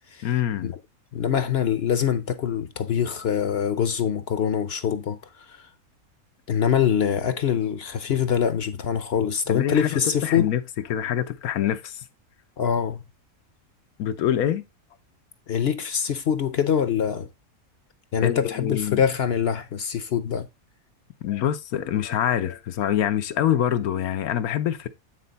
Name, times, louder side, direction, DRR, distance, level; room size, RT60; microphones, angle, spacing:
voice 1, 0.2-0.7 9.5-10.6 10.9-12.0 14.0-14.6 18.2-19.0 21.2-24.9, left 10 dB, 90° left, 1.2 m, -25 dB
voice 2, 1.1-5.2 5.5-5.7 6.5-10.5 12.6-13.0 15.5-17.3 18.1-20.5, left 8 dB, 55° left, 0.8 m, -24 dB
9.3 x 4.2 x 4.0 m
omnidirectional pair, 1.5 m